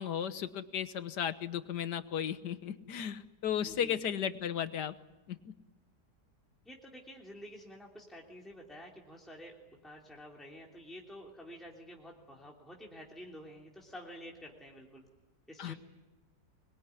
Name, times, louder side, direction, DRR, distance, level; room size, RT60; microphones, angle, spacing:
voice 1, 0.0-4.9 5.3-5.4 15.6-15.7, left 9 dB, 85° left, 12 dB, 1.7 m, -35 dB
voice 2, 3.6-4.1 6.6-9.5 9.8-15.0 15.5-15.8, equal, ahead, -1 dB, 3.1 m, -50 dB
25.0 x 22.0 x 9.8 m, 1.0 s
omnidirectional pair, 1.8 m